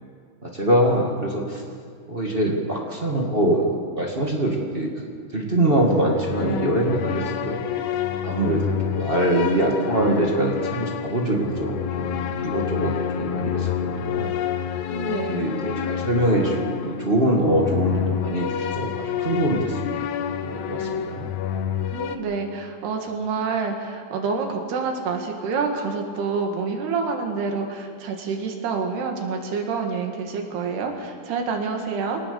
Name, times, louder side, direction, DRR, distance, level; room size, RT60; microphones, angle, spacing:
voice 1, 0.4-1.6 2.1-3.7 3.9-4.9 5.3-7.6 8.2-14.3 15.3-19.9 20.4-21.3, right 1 dB, 20° right, -1 dB, 1.5 m, -23 dB
sound 1, 5.8-22.2, left 8 dB, 75° left, 1.8 m, -28 dB
voice 2, 14.9-15.5 21.0-21.2 21.9-32.2, right 5 dB, 80° right, 3 dB, 4.0 m, -27 dB
23.5 x 18.5 x 7.0 m, 2.2 s
omnidirectional pair, 4.6 m